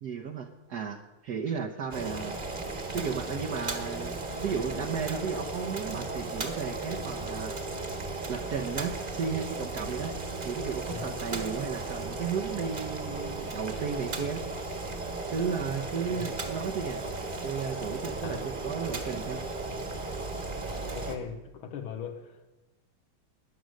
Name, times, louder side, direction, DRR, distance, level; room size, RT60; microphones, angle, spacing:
voice 1, 0.0-2.3 2.9-7.5 8.3-10.1 10.4-14.4 15.3-17.0 17.4-19.4, right 6 dB, 60° right, 2 dB, 1.2 m, -34 dB
Boiling, 1.9-21.2, right 2 dB, 30° right, 1.4 m, -36 dB
voice 2, 20.6-22.5, left 7 dB, 85° left, 5 dB, 1.8 m, -40 dB
21.0 x 7.7 x 6.3 m, 1.1 s
omnidirectional pair, 2.3 m